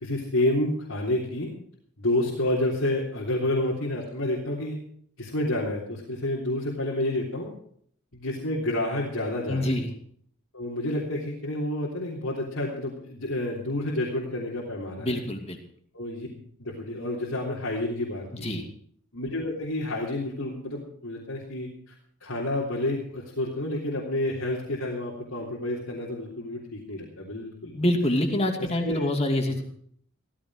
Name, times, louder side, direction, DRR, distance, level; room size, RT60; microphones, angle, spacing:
voice 1, 0.0-1.5 2.0-4.8 5.2-7.5 8.1-9.8 10.5-15.2 15.9-16.3 16.6-18.5 19.1-21.7 22.2-27.7 28.6-29.1, left 1 dB, 85° left, -4 dB, 3.4 m, -29 dB
voice 2, 9.5-9.9 15.0-15.6 18.3-18.6 27.7-29.6, left 1 dB, 30° left, 4 dB, 2.5 m, -26 dB
16.5 x 14.5 x 4.9 m, 0.62 s
head